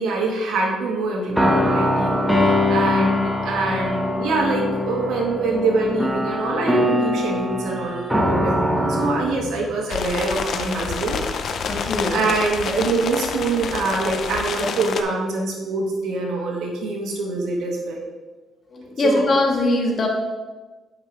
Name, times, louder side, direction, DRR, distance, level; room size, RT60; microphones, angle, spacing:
voice 1, 0.0-11.2 11.6-11.7 12.1-18.0 19.0-19.2, right 3 dB, 75° right, -2 dB, 1.4 m, -24 dB
sound 1, 1.3-9.8, left 1 dB, 5° right, 1.3 m, -22 dB
sound 2, 9.9-15.0, left 5 dB, 60° left, 0.6 m, -28 dB
voice 2, 11.7-12.3 18.7-20.1, left 2 dB, 45° left, 0 dB, 1.6 m, -21 dB
8.8 x 5.2 x 3.4 m, 1.2 s
cardioid pair, 90°, 0 cm